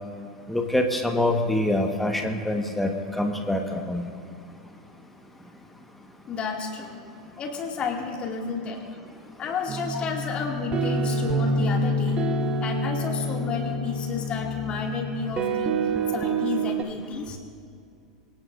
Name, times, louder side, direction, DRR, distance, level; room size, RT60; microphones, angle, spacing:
voice 1, 0.5-4.1, left 1 dB, 5° left, 3 dB, 1.6 m, -25 dB
voice 2, 6.3-7.0 7.4-8.8 9.4-12.3 12.6-17.4, left 5 dB, 30° left, 0 dB, 2.7 m, -31 dB
sound 1, 9.7-16.8, right 1 dB, 30° right, 1.4 m, -27 dB
24.0 x 19.0 x 2.7 m, 2.4 s
figure-of-eight pair, 90°, 3 cm